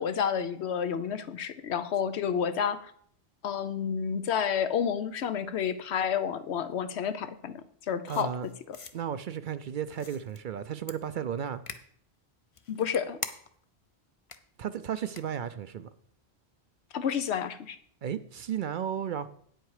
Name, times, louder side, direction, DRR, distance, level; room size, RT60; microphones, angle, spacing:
voice 1, 0.0-2.9 3.4-7.6 7.9-8.3 8.7-8.8 12.7-13.2 16.9-17.8, left 7 dB, 85° left, 11 dB, 1.0 m, -30 dB
sound 1, 8.1-8.9 9.9-10.4 10.9-11.0 11.7-11.8 12.5-13.6 14.3-14.4 15.1-15.2, left 5 dB, 35° left, 0.6 m, -41 dB
voice 2, 8.1-8.5 8.9-11.6 14.6-15.9 18.0-19.3, right 8 dB, 60° right, 13 dB, 0.6 m, -34 dB
9.2 x 7.9 x 4.8 m, 0.63 s
omnidirectional pair, 1.1 m